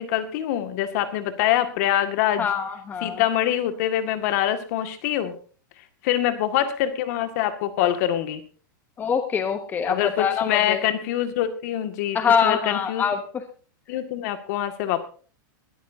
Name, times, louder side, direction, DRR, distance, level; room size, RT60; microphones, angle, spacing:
voice 1, 0.0-2.5 3.0-5.3 6.0-8.4 9.9-12.2 12.4-13.0 13.9-15.1, left 11 dB, 50° left, 8 dB, 2.0 m, -24 dB
voice 2, 2.4-3.2 9.0-10.8 12.1-13.2, left 7 dB, 15° left, 8 dB, 1.0 m, -24 dB
21.0 x 13.5 x 2.7 m, 0.40 s
supercardioid pair, 150°, 11 cm